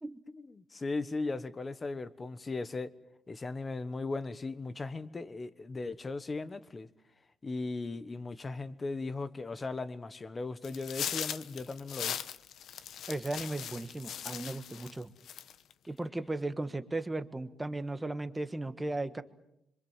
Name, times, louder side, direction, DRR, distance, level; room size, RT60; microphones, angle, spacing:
voice 1, 0.4-2.9 3.3-6.9 7.4-12.1, left 3 dB, 20° left, 1.3 m, -37 dB
sound 1, 10.6-15.0 15.3-15.7, left 9 dB, 55° left, 1.1 m, -39 dB
voice 2, 13.1-15.1 15.9-19.2, right 2 dB, 10° right, 1.4 m, -36 dB
26.5 x 25.0 x 7.4 m
cardioid pair, 160°, 0 cm